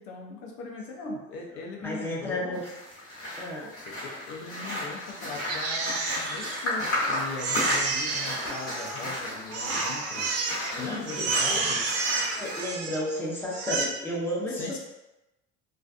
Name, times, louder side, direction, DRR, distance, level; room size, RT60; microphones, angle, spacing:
voice 1, 0.0-2.6 3.9-11.8 14.5-14.8, left 4 dB, 85° left, 0 dB, 0.6 m, -40 dB
voice 2, 1.8-2.6 3.4-3.7 10.7-11.6 12.3-14.8, left 1 dB, 5° left, -5 dB, 0.6 m, -33 dB
sound 1, 2.5-12.6, left 1 dB, 45° left, 1.3 m, -34 dB
Crying sobbing, 5.3-7.0 7.4-9.2 9.5-10.7 11.1-13.2 13.5-13.8, right 4 dB, 55° right, 0.5 m, -30 dB
2.3 x 2.3 x 2.4 m, 0.96 s
supercardioid pair, 100°, 30 cm